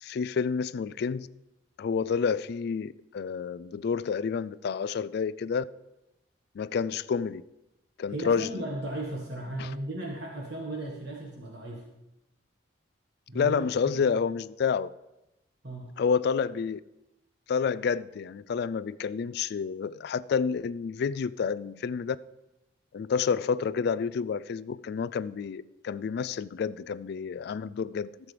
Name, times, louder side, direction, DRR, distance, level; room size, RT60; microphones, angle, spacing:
voice 1, 0.0-1.3 1.8-5.6 6.5-7.4 8.0-8.5 9.6-9.7 13.3-14.9 16.0-16.8 17.5-22.2 22.9-28.1, left 6 dB, 60° left, 0.3 m, -29 dB
voice 2, 8.1-11.8 13.3-13.6 13.9-14.1 15.6-15.9, right 1 dB, 60° right, 1.5 m, -36 dB
14.5 x 7.5 x 3.3 m
head